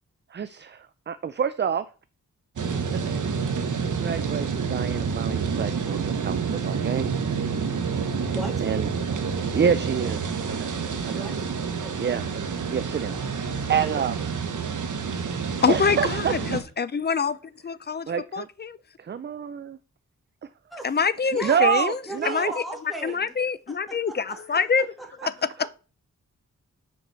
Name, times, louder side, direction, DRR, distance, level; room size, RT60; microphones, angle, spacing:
voice 1, 0.3-1.9 4.0-7.1 8.6-8.9 9.5-10.7 11.0-11.3 12.0-12.4 12.7-14.2 15.7-16.3 18.1-18.5 19.0-19.8 21.4-22.5 23.1-23.2, right 7 dB, 35° right, 0.4 m, -27 dB
sound 1, 2.6-16.6, right 6 dB, 75° right, 1.3 m, -28 dB
voice 2, 8.3-8.7 11.2-11.4 11.8-12.2 13.7-13.8 20.7-20.9 21.3-21.6 22.1-23.3 23.7-24.7 25.0-25.3 25.6-25.7, right 1 dB, ahead, 2.3 m, -37 dB
voice 3, 15.6-17.4 17.6-18.8 20.8-22.0 22.3-22.5 23.0-24.9 25.2-25.5, left 6 dB, 35° left, 0.5 m, -25 dB
6.9 x 4.8 x 6.7 m
wide cardioid pair, 110°, 31 cm